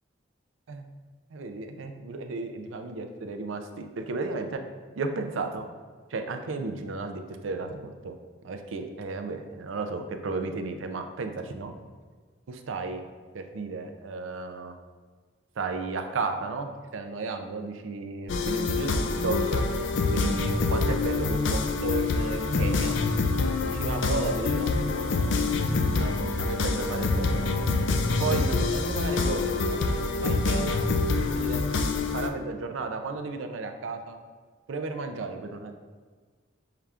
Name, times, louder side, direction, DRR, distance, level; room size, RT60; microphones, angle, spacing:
voice 1, 1.3-4.5 5.0-5.6 6.1-8.1 8.4-11.7 12.5-13.0 13.3-14.7 15.6-18.9 19.2-19.6 20.1-23.0 23.7-25.3 25.8-27.5 28.2-30.8 31.2-31.6 32.1-34.2 34.7-35.7, right 3 dB, 90° right, 6 dB, 0.4 m, -34 dB
sound 1, 18.3-32.3, left 3 dB, 75° left, 0.4 m, -26 dB
5.6 x 2.4 x 3.4 m, 1.5 s
head